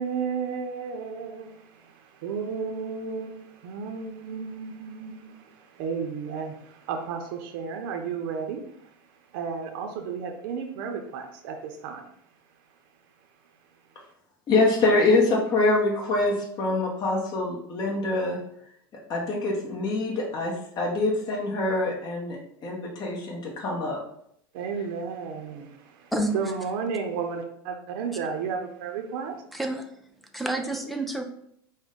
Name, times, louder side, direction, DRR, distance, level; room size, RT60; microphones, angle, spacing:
voice 1, 0.0-12.1 24.5-29.4, right 6 dB, 65° right, 4 dB, 0.6 m, -33 dB
voice 2, 14.5-18.4 19.1-24.0, left 2 dB, 35° left, -1 dB, 0.8 m, -25 dB
voice 3, 29.5-29.9 30.3-31.2, right 1 dB, ahead, 4 dB, 0.5 m, -28 dB
5.0 x 2.1 x 3.6 m, 0.72 s
supercardioid pair, 110°, 12 cm